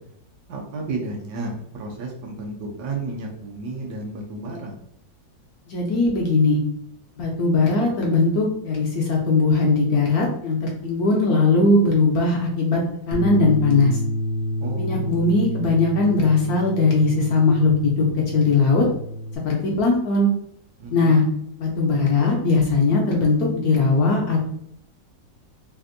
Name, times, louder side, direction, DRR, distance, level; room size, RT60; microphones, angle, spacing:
voice 1, 0.5-4.7 14.6-15.2 20.8-21.3, right 3 dB, 70° right, 0 dB, 1.1 m, -32 dB
voice 2, 5.7-6.6 7.2-12.8 13.1-14.0 14.8-18.9 19.4-20.3 20.9-21.2 21.6-24.5, left 3 dB, 70° left, -1 dB, 1.0 m, -19 dB
Bass guitar, 13.1-19.4, equal, 85° right, 1.4 m, -29 dB
3.4 x 2.5 x 2.5 m, 0.72 s
omnidirectional pair, 2.0 m